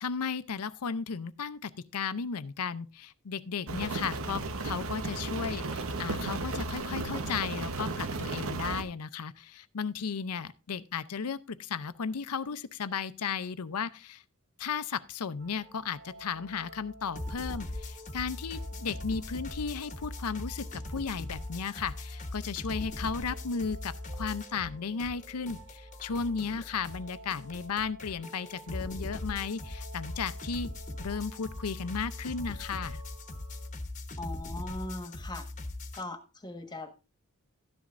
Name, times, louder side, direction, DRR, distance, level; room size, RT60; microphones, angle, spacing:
voice 1, 0.0-14.2 14.6-30.7 31.0-33.0, left 6 dB, 90° left, 0.6 m, -35 dB
Rain, 3.7-8.8, right 3 dB, 65° right, 1.0 m, -34 dB
sound 1, 15.4-33.7, right 1 dB, 25° right, 2.3 m, -50 dB
sound 2, 17.1-24.7 25.0-36.0, left 2 dB, 35° left, 1.1 m, -40 dB
voice 2, 34.2-35.5 35.9-37.0, left 2 dB, 20° left, 1.4 m, -40 dB
13.0 x 10.5 x 2.5 m
head